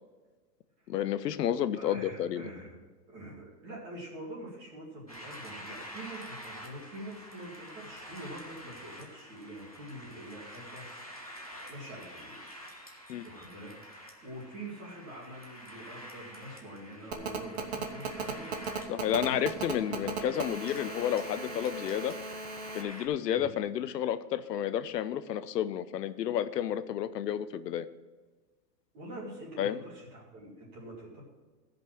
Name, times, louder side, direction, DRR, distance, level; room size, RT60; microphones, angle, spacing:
voice 1, 0.9-2.5 13.1-13.2 18.9-22.2 22.7-27.9 29.6-29.8, left 10 dB, 75° left, 13 dB, 0.7 m, -31 dB
voice 2, 1.8-10.9 11.7-12.6 13.2-18.5 19.1-20.2 23.3-23.5 28.9-31.2, right 1 dB, 20° right, -3 dB, 2.1 m, -45 dB
sound 1, 5.1-23.1, equal, 25° left, 0.4 m, -47 dB
Telephone, 17.1-22.8, right 5 dB, 40° right, 1.0 m, -37 dB
14.0 x 5.3 x 6.0 m, 1.3 s
hypercardioid pair, 175°, 49 cm